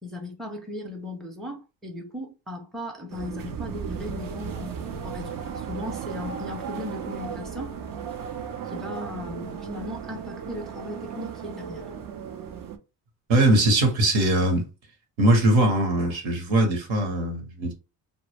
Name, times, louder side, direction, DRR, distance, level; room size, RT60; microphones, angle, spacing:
voice 1, 0.0-7.7 8.7-11.8, left 1 dB, ahead, 0.6 m, -37 dB
sound 1, 3.1-12.8, right 7 dB, 45° right, 0.5 m, -35 dB
voice 2, 13.3-14.7 15.2-17.7, right 1 dB, 70° right, 1.0 m, -21 dB
2.1 x 2.1 x 3.2 m
supercardioid pair, 65°, 48 cm